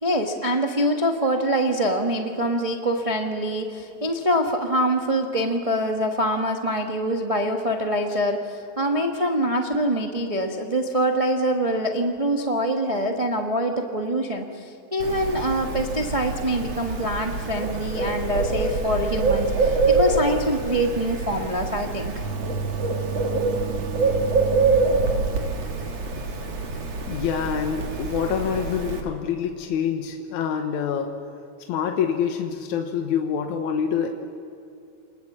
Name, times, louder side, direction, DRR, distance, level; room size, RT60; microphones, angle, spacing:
voice 1, 0.0-22.1, equal, 40° right, 2 dB, 0.4 m, -24 dB
Bird, 15.0-29.0, right 3 dB, 60° right, 3.1 m, -25 dB
voice 2, 27.1-31.1 31.7-34.1, left 7 dB, 80° left, 4 dB, 2.6 m, -26 dB
29.0 x 20.5 x 7.5 m, 2.5 s
omnidirectional pair, 3.4 m